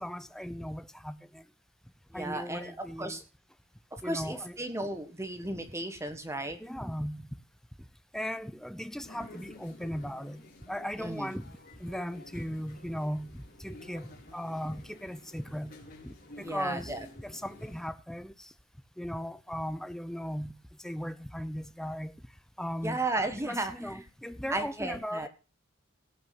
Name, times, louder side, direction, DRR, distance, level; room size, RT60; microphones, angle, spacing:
voice 1, 0.0-1.4 2.1-3.2 4.0-4.6 6.6-7.3 8.1-11.5 11.8-15.8 16.0-18.5 19.0-20.5 20.8-22.1 22.6-23.0 23.4-25.3, equal, ahead, 0.6 m, -37 dB
voice 2, 2.1-3.2 3.9-6.6 11.0-11.3 16.4-17.1 22.8-24.0 24.5-25.3, right 2 dB, 15° right, 1.6 m, -34 dB
sound 1, 9.0-17.9, left 2 dB, 45° left, 4.7 m, -52 dB
18.0 x 6.0 x 5.9 m
head